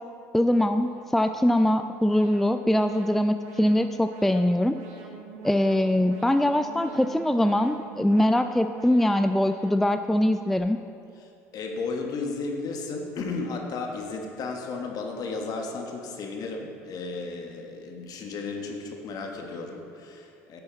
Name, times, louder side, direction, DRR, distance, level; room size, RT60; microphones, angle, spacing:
voice 1, 0.3-4.8 5.4-10.8, left 1 dB, 5° left, 8 dB, 0.3 m, -22 dB
Alarm, 0.7-10.6, right 4 dB, 80° right, 1.3 m, -45 dB
voice 2, 11.5-20.6, left 3 dB, 55° left, 2 dB, 1.4 m, -34 dB
9.9 x 7.0 x 3.9 m, 2.6 s
hypercardioid pair, 75°, 8 cm